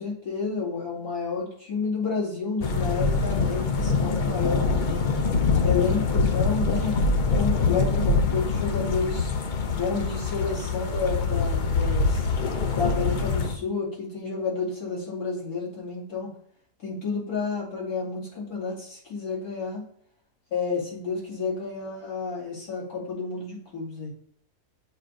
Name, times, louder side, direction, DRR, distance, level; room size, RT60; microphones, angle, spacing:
voice 1, 0.0-5.1 5.6-7.0 7.3-9.3 9.7-12.3 12.7-16.3 16.8-19.8 20.5-24.1, left 4 dB, 90° left, -5 dB, 2.9 m, -30 dB
sound 1, 2.6-13.6, left 4 dB, 70° left, 0.4 m, -24 dB
7.5 x 2.6 x 5.0 m, 0.62 s
omnidirectional pair, 1.6 m